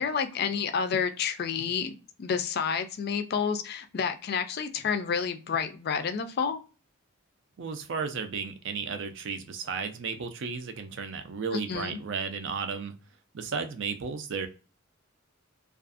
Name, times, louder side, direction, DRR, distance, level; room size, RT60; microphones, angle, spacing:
voice 1, 0.0-1.9 2.2-6.6 11.5-12.0, left 6 dB, 50° left, 0.4 m, -29 dB
voice 2, 7.6-12.9 13.3-14.5, right 5 dB, 60° right, 0.4 m, -34 dB
2.5 x 2.3 x 2.3 m
head